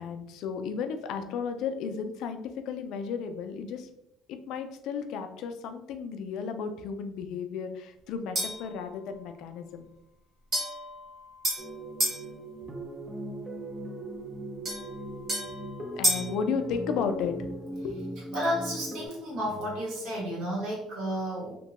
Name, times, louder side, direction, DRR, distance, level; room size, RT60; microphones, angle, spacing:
voice 1, 0.0-3.9 4.3-9.9 16.0-17.3 17.8-18.0, left 6 dB, 65° left, 7 dB, 0.3 m, -34 dB
sound 1, 8.3-8.7 10.5-12.2 14.6-16.4, equal, 40° right, 1.0 m, -31 dB
sound 2, 11.6-19.1, right 1 dB, 15° right, 0.4 m, -39 dB
voice 2, 18.3-21.5, equal, 80° right, -4 dB, 1.3 m, -32 dB
2.8 x 2.2 x 2.9 m, 0.83 s
cardioid pair, 155°, 0 cm